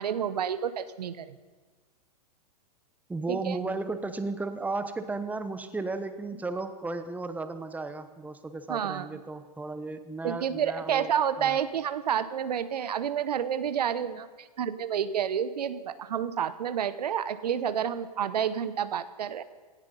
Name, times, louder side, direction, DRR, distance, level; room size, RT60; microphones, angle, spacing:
voice 1, 0.0-1.4 3.3-3.6 8.7-9.1 10.2-19.4, right 8 dB, 75° right, 14 dB, 0.9 m, -29 dB
voice 2, 3.1-11.1 11.4-11.6, right 3 dB, 5° right, 10 dB, 1.0 m, -34 dB
18.5 x 13.5 x 5.4 m, 1.3 s
hypercardioid pair, 110°, 21 cm